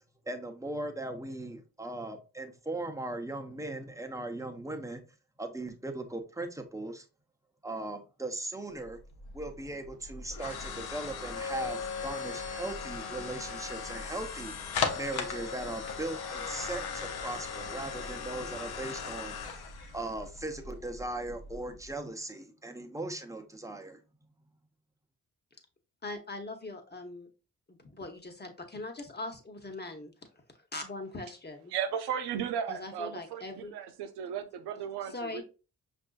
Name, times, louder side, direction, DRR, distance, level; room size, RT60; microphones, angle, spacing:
voice 1, 0.3-5.0 5.4-7.1 7.6-9.0 9.3-24.0, right 2 dB, 10° right, 0.8 m, -39 dB
sound 1, 8.9-21.9, left 5 dB, 75° left, 0.8 m, -38 dB
voice 2, 26.0-27.3 27.7-30.1 30.7-31.7 32.7-33.7 35.1-35.4, left 2 dB, 25° left, 1.0 m, -41 dB
voice 3, 31.7-35.4, right 8 dB, 85° right, 0.6 m, -35 dB
5.3 x 2.6 x 2.3 m
supercardioid pair, 45°, 38 cm